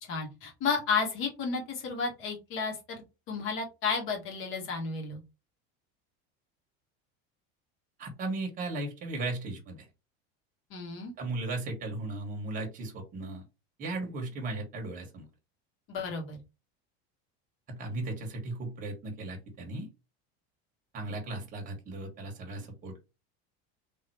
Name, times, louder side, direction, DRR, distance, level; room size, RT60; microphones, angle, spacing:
voice 1, 0.0-5.2 10.7-11.1 15.9-16.4, left 5 dB, 40° left, 1 dB, 1.7 m, -32 dB
voice 2, 8.0-9.8 11.2-13.4 13.8-15.3 17.7-19.9 20.9-23.0, right 2 dB, 25° right, 2 dB, 1.5 m, -36 dB
3.6 x 3.0 x 4.4 m, 0.27 s
cardioid pair, 165°, 31 cm